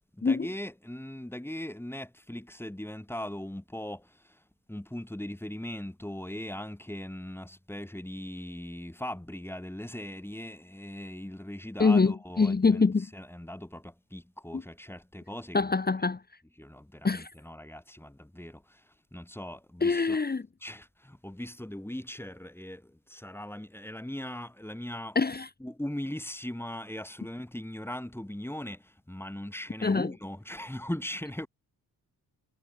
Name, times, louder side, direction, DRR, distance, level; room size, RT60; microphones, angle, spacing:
voice 1, 0.1-4.4 4.7-12.9 13.1-15.6 16.6-20.2 20.6-25.2 25.6-31.5, left 1 dB, 5° left, 3.6 m, -39 dB
voice 2, 11.8-13.1 14.5-14.6 15.5-16.2 17.0-17.3 19.8-20.4 25.1-25.5 29.8-30.1, left 4 dB, 25° left, 1.2 m, -24 dB
cardioid pair, 70°, 39 cm